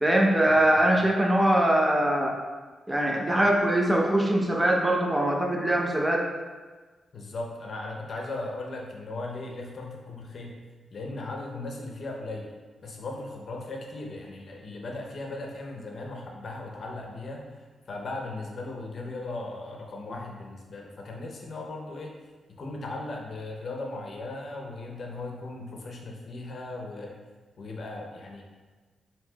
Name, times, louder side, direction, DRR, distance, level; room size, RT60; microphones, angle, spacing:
voice 1, 0.0-2.4 2.9-6.2, right 1 dB, 10° right, 0 dB, 0.6 m, -22 dB
voice 2, 7.1-10.6 10.9-17.4 17.9-22.1 22.6-27.2 27.6-28.4, left 2 dB, 55° left, 1 dB, 0.6 m, -37 dB
5.3 x 2.8 x 2.2 m, 1.3 s
cardioid pair, 90°, 0 cm